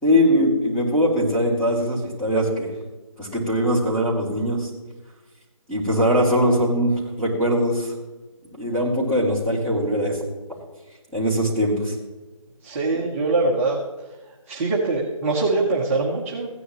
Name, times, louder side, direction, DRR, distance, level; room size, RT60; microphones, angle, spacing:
voice 1, 0.0-2.7 3.2-4.7 5.7-6.9 7.2-7.9 8.6-10.2 11.1-11.9, equal, 5° left, -9 dB, 2.8 m, -21 dB
voice 2, 12.6-13.8 14.5-16.5, right 3 dB, 25° right, -4 dB, 1.1 m, -23 dB
16.5 x 10.0 x 3.1 m, 1.2 s
figure-of-eight pair, 160°, 18 cm